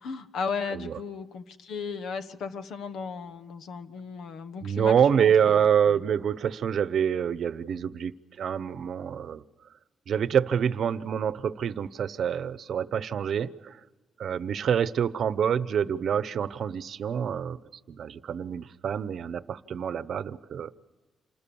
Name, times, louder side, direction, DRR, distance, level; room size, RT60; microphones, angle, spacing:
voice 1, 0.0-6.0, left 5 dB, 80° left, 10 dB, 1.3 m, -36 dB
voice 2, 4.6-9.4 10.1-13.8 14.2-17.6 17.9-20.7, right 8 dB, 60° right, 15 dB, 0.9 m, -26 dB
28.0 x 20.5 x 7.1 m, 1.3 s
cardioid pair, 115°, 0 cm